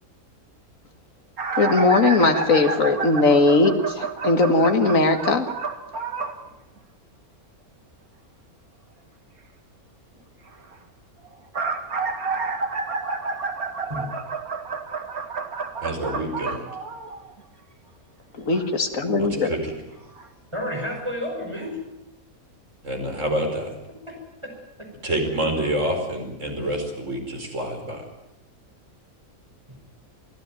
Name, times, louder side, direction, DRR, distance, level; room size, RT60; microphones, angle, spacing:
sound 1, 1.4-6.4 11.3-17.4 18.5-18.7 19.7-19.8 20.2-20.3, right 4 dB, 75° right, 2.4 m, -29 dB
voice 1, 1.6-5.5 18.3-19.5, left 3 dB, 65° left, 6 dB, 2.3 m, -19 dB
voice 2, 15.8-16.6 19.2-19.8 22.8-23.7 25.0-28.0, right 1 dB, 55° right, 2 dB, 5.3 m, -27 dB
voice 3, 20.5-21.8 24.1-24.2 24.4-24.5 29.7-29.8, equal, 20° right, 1 dB, 5.3 m, -30 dB
24.5 x 15.5 x 9.2 m, 0.93 s
omnidirectional pair, 1.5 m